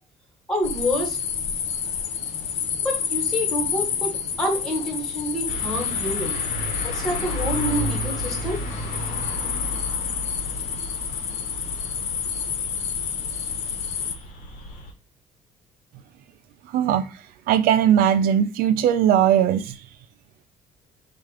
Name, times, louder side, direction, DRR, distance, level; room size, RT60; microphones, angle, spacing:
voice 1, 0.5-1.2 2.8-6.4 6.8-8.6, equal, 5° left, 1.4 m, -27 dB
sound 1, 0.6-14.1, left 7 dB, 50° left, 0.6 m, -29 dB
sound 2, 5.5-14.9, equal, 80° left, 1.2 m, -33 dB
voice 2, 16.7-17.1 17.5-19.8, right 9 dB, 90° right, 0.5 m, -19 dB
4.3 x 2.5 x 4.8 m
cardioid pair, 160°, 15 cm